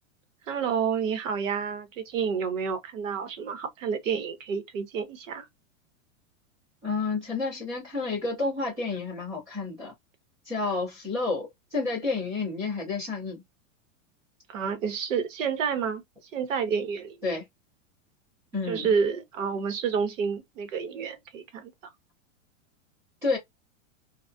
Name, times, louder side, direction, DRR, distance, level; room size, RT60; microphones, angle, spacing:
voice 1, 0.5-5.4 14.5-16.0 16.3-17.2 18.7-21.7, right 6 dB, 75° right, 1.0 m, -29 dB
voice 2, 6.8-9.9 10.5-13.4 17.2-17.4 18.5-19.0 23.2-23.4, left 3 dB, 10° right, 0.4 m, -30 dB
2.3 x 2.3 x 2.4 m
supercardioid pair, 175°, 39 cm